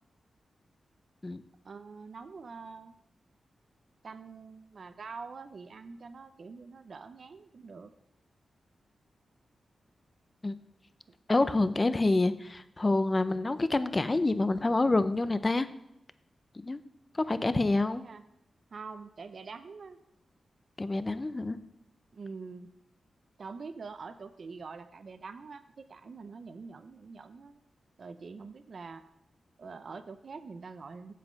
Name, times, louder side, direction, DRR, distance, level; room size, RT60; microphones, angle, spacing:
voice 1, 1.6-2.9 4.0-7.9 17.8-18.2 18.7-20.0 22.1-22.7 23.4-27.6 28.0-29.0 29.6-31.1, right 4 dB, 60° right, 10 dB, 0.6 m, -45 dB
voice 2, 11.3-15.7 16.5-16.8 17.1-18.0 20.8-21.6, left 2 dB, 30° left, 13 dB, 0.6 m, -27 dB
7.6 x 7.3 x 5.2 m, 0.82 s
cardioid pair, 60°, 0 cm